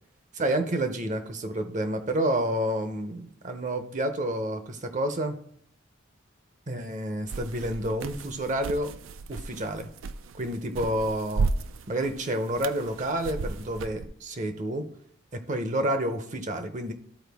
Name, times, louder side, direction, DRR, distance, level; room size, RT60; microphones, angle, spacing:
voice 1, 0.3-5.4 6.7-8.9 9.3-9.9 10.3-11.5 11.9-14.9 15.3-16.9, right 1 dB, 35° right, 8 dB, 0.7 m, -29 dB
sound 1, 7.3-14.0, right 4 dB, 75° right, 0.4 m, -34 dB
12.5 x 4.4 x 3.4 m, 0.64 s
head